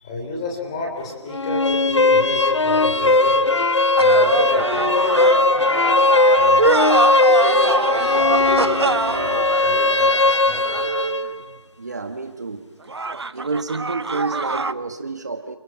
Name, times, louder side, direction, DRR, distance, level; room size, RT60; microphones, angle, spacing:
voice 1, 0.0-3.5 3.9-6.7 7.2-10.8, left 2 dB, 10° left, 1 dB, 3.7 m, -32 dB
sound 1, 1.3-11.3, left 2 dB, 75° left, 1.2 m, -18 dB
Wind instrument woodwind instrument, 2.9-11.2, right 3 dB, 20° right, 5.8 m, -31 dB
sound 2, 4.0-11.3 12.9-14.7, right 3 dB, 65° right, 1.1 m, -25 dB
voice 2, 11.8-12.6 13.3-15.6, right 3 dB, 35° right, 7 dB, 1.6 m, -29 dB
29.5 x 29.0 x 6.0 m, 1.1 s
figure-of-eight pair, 175°, 15 cm